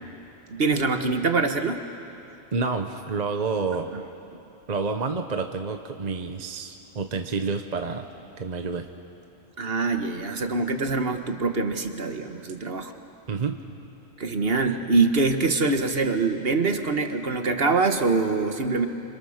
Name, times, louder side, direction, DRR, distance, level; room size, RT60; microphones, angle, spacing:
voice 1, 0.5-1.8 3.9-4.0 9.6-12.9 14.2-18.9, right 3 dB, 55° right, 6 dB, 1.5 m, -24 dB
voice 2, 2.5-3.9 4.7-8.1 8.4-8.9 13.3-13.6, right 4 dB, 40° right, 6 dB, 1.0 m, -29 dB
28.0 x 26.0 x 6.6 m, 2.7 s
omnidirectional pair, 1.2 m